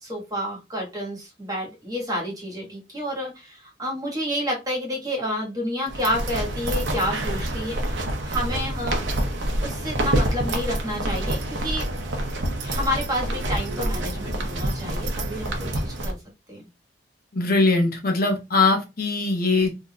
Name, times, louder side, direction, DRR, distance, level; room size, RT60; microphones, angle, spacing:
voice 1, 0.0-9.0 9.6-11.9 12.6-16.2 16.5-16.6, equal, 20° right, 1.3 m, -29 dB
sound 1, 5.9-16.1, right 1 dB, 70° right, 0.8 m, -27 dB
voice 2, 17.3-19.7, left 3 dB, 50° left, 0.7 m, -21 dB
3.7 x 2.6 x 2.2 m
head